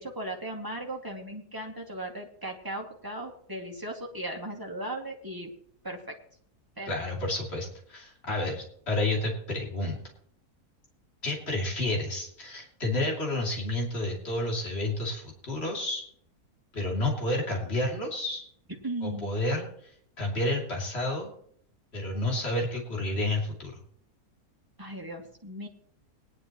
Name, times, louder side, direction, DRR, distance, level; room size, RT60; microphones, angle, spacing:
voice 1, 0.0-5.5 5.8-6.2 6.8-6.9 18.8-19.3 24.8-25.7, right 1 dB, 15° right, 0 dB, 2.2 m, -37 dB
voice 2, 6.9-10.0 11.2-16.0 16.7-18.5 19.0-19.9 20.2-21.3 21.9-23.8, left 1 dB, 40° left, -1 dB, 3.1 m, -30 dB
19.5 x 11.0 x 3.0 m, 0.63 s
omnidirectional pair, 1.6 m